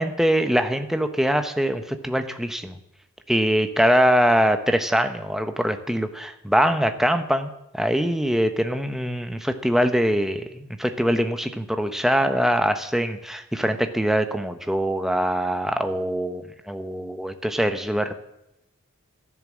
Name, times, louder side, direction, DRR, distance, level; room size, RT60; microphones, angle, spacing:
voice 1, 0.0-2.7 3.3-18.2, equal, ahead, 8 dB, 1.0 m, -23 dB
14.0 x 11.0 x 7.5 m, 0.89 s
head